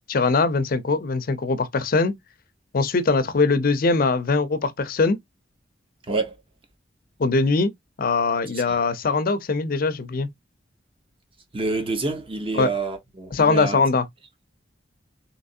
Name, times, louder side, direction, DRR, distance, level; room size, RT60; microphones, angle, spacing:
voice 1, 0.1-2.1 2.7-5.2 7.2-7.7 8.0-10.3 12.5-12.7 13.3-14.1, left 4 dB, 50° left, 0.5 m, -21 dB
voice 2, 11.5-13.8, right 3 dB, 30° right, 0.9 m, -27 dB
3.3 x 2.9 x 2.6 m
head